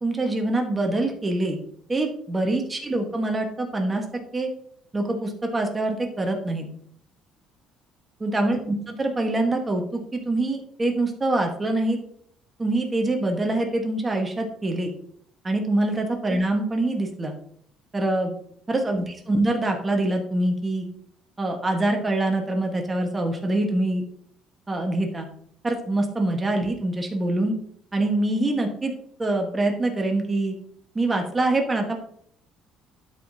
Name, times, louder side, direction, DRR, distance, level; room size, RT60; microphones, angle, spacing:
voice 1, 0.0-1.6 1.9-4.0 4.3-4.5 4.9-6.7 8.2-12.0 12.6-14.9 15.4-17.3 17.9-18.3 18.7-20.9 21.4-24.0 24.7-25.3 25.6-27.6 27.9-28.9 29.2-30.5 30.9-32.0, right 2 dB, 20° right, 3 dB, 1.3 m, -24 dB
12.0 x 5.0 x 2.8 m, 0.66 s
cardioid pair, 120°, 0 cm